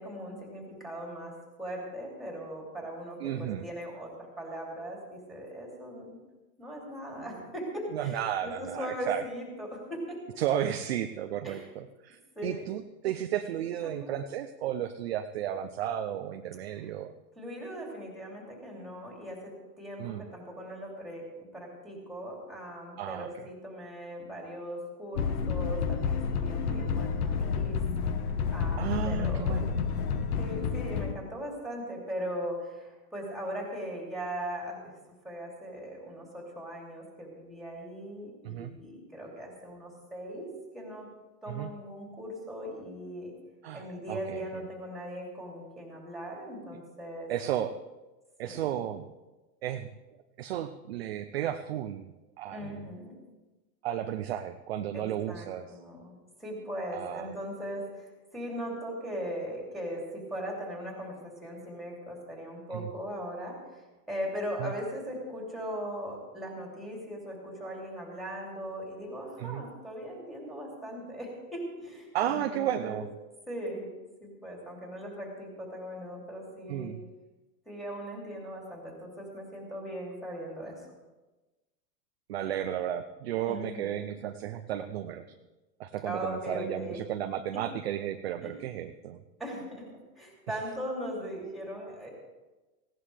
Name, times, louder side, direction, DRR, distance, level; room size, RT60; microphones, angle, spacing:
voice 1, 0.0-6.2 6.6-10.2 11.4-11.7 12.3-12.7 13.8-14.2 17.4-27.8 28.5-29.7 30.4-34.9 35.2-41.1 41.4-43.3 43.7-47.3 48.4-48.8 52.5-53.2 54.9-73.0 73.5-73.9 74.2-76.9 77.7-80.8 83.5-84.1 86.1-87.0 88.4-88.5 89.4-89.9 90.2-92.1, equal, ahead, -2 dB, 2.8 m, -39 dB
voice 2, 3.2-3.7 7.9-9.2 10.4-17.1 20.0-20.2 23.0-23.3 26.7-26.9 28.8-29.8 38.4-38.7 41.5-41.7 43.6-44.7 47.3-47.7 48.4-49.1 49.6-49.9 50.4-52.9 53.8-55.6 56.9-57.3 62.7-62.9 64.6-64.7 69.4-69.6 72.1-73.1 76.7-77.0 82.3-85.2 85.8-89.2, right 11 dB, 40° right, 8 dB, 0.5 m, -33 dB
sound 1, 25.2-31.1, left 6 dB, 60° left, 1.4 m, -30 dB
18.5 x 16.5 x 3.3 m, 1.1 s
supercardioid pair, 170°, 50 cm